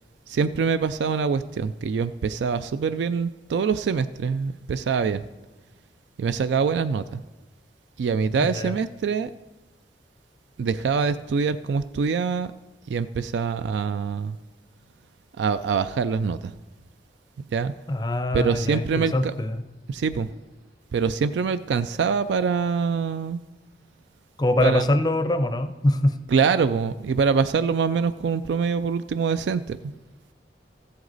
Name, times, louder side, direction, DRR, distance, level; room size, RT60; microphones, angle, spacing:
voice 1, 0.3-5.3 6.2-7.2 8.0-9.3 10.6-12.5 12.9-14.4 15.4-16.6 17.5-17.7 18.3-19.3 19.9-20.4 20.9-23.4 24.6-24.9 26.3-29.9, right 5 dB, 80° right, 12 dB, 0.3 m, -24 dB
voice 2, 8.4-8.8 17.9-19.6 24.4-26.2, left 1 dB, 20° left, 10 dB, 0.5 m, -23 dB
14.5 x 7.9 x 4.0 m, 1.1 s
head